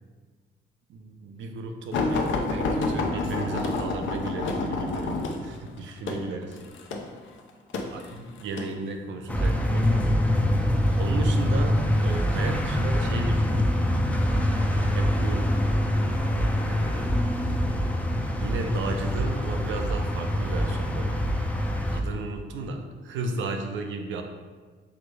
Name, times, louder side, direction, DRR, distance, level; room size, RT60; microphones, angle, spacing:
voice 1, 0.9-6.6 7.9-10.2 11.0-13.8 14.9-15.6 16.6-17.2 18.4-21.2 21.6-24.2, right 3 dB, 80° right, 4 dB, 0.5 m, -34 dB
sound 1, 1.9-8.7 9.5-9.9 10.9-11.5 12.3-12.4 12.8-12.9, left 3 dB, 75° left, 0.6 m, -29 dB
sound 2, 9.3-22.0, equal, 5° left, 0.3 m, -24 dB
4.7 x 2.1 x 4.6 m, 1.5 s
cardioid pair, 110°, 20 cm